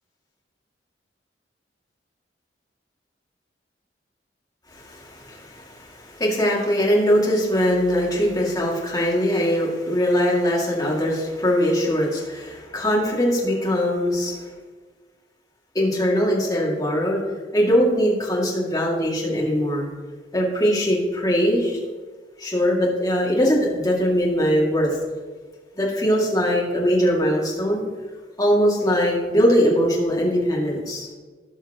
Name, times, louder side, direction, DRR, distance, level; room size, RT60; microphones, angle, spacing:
voice 1, 4.7-14.4 15.7-17.2 17.5-19.9 20.3-21.8 22.4-24.9 25.8-27.8 28.4-31.1, equal, 20° left, -4 dB, 2.4 m, -21 dB
17.0 x 5.8 x 3.0 m, 1.4 s
head